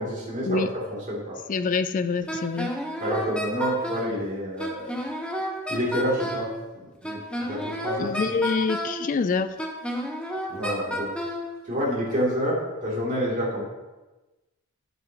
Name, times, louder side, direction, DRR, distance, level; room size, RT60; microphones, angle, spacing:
voice 1, 0.0-1.4 3.0-4.9 5.7-6.5 7.0-8.4 10.5-11.2 11.6-13.6, equal, 35° right, -6 dB, 2.8 m, -28 dB
voice 2, 1.5-2.7 8.0-9.5, left 4 dB, 35° left, 11 dB, 0.3 m, -26 dB
Wind instrument woodwind instrument, 2.3-4.1 4.6-6.5 7.0-9.0 9.6-11.4, equal, 5° left, 1.0 m, -31 dB
11.0 x 7.5 x 3.0 m, 1.1 s
head